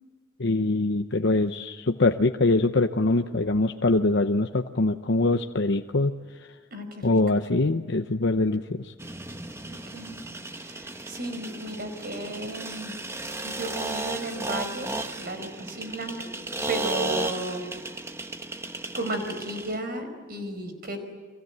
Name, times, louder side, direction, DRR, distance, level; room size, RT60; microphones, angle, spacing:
voice 1, 0.4-6.1 7.0-8.9, left 2 dB, 60° left, 5 dB, 0.9 m, -23 dB
voice 2, 6.7-7.4 9.7-10.2 10.6-13.0 13.4-14.9 15.2-16.2 16.7-17.7 19.0-21.0, right 2 dB, 50° right, 7 dB, 5.0 m, -34 dB
sound 1, 9.0-19.8, right 2 dB, 15° right, 1.2 m, -35 dB
30.0 x 24.0 x 8.0 m, 1.4 s
head